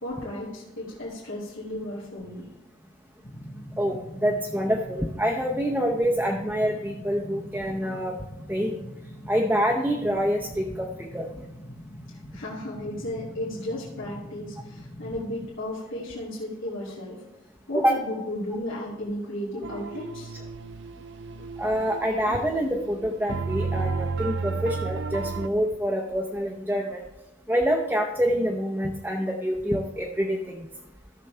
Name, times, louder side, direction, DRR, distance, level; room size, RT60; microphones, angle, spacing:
voice 1, 0.0-2.5 2.8-2.9 12.1-17.2 17.7-20.3, left 1 dB, 80° left, -8 dB, 2.6 m, -34 dB
sound 1, 3.2-15.5, equal, 30° left, 1.3 m, -43 dB
voice 2, 3.8-8.1 8.5-8.8 9.3-11.3 17.7-17.9 21.6-27.0 27.5-30.7, equal, 10° right, 0 dB, 0.7 m, -26 dB
sound 2, 19.6-25.5, right 4 dB, 60° right, 0.4 m, -33 dB
15.5 x 6.8 x 3.3 m, 0.94 s
head